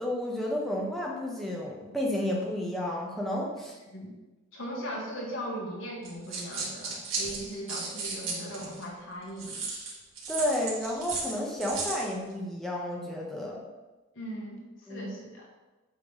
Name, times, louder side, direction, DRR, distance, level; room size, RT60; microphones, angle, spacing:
voice 1, 0.0-3.7 10.3-13.6 14.9-15.1, left 1 dB, ahead, -3 dB, 1.1 m, -31 dB
voice 2, 4.5-9.6 14.2-15.5, equal, 70° left, -3 dB, 1.7 m, -39 dB
sound 1, 6.0-8.8 9.4-12.1, right 4 dB, 80° right, 2.1 m, -35 dB
8.1 x 3.4 x 5.6 m, 1.2 s
head